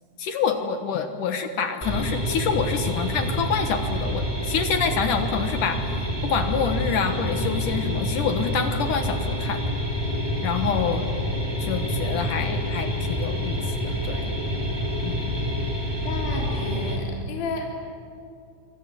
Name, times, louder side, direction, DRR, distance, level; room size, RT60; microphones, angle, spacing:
voice 1, 0.2-9.6 10.4-11.1 11.6-14.3 15.0-15.3, left 6 dB, 65° left, 6 dB, 2.1 m, -27 dB
sound 1, 1.8-17.0, equal, 5° right, 3.6 m, -27 dB
voice 2, 16.0-17.6, left 4 dB, 50° left, -2 dB, 5.0 m, -32 dB
26.5 x 25.5 x 8.8 m, 2.5 s
omnidirectional pair, 5.5 m